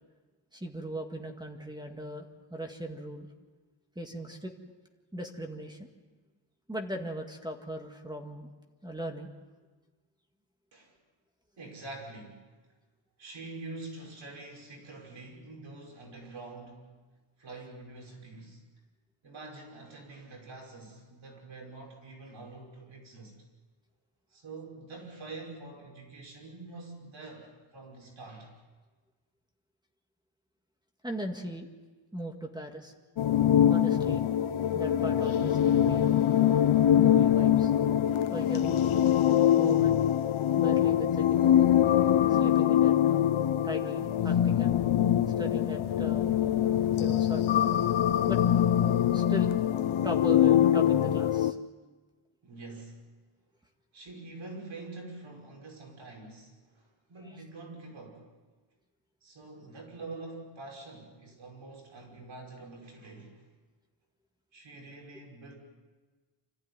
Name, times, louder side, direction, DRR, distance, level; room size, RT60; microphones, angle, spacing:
voice 1, 0.5-3.3 4.0-4.5 5.1-5.9 6.7-8.5 8.8-9.3 31.0-31.7 32.1-32.9 33.7-34.3 34.7-36.2 37.0-37.7 38.3-39.0 39.6-40.0 40.5-41.7 42.3-43.3 43.6-44.8 45.4-46.3 47.0-47.7 48.3-48.4 49.1-49.6 50.0-51.6, right 1 dB, 10° right, 3 dB, 1.9 m, -39 dB
voice 2, 11.6-12.4 13.2-16.9 17.4-18.6 19.2-23.3 24.3-28.5 52.4-53.0 53.9-58.3 59.2-63.4 64.5-65.6, right 3 dB, 75° right, 0 dB, 5.8 m, -45 dB
sound 1, 33.2-51.5, left 10 dB, 85° left, 0.9 m, -24 dB
26.5 x 15.0 x 9.7 m, 1.3 s
wide cardioid pair, 150°, 47 cm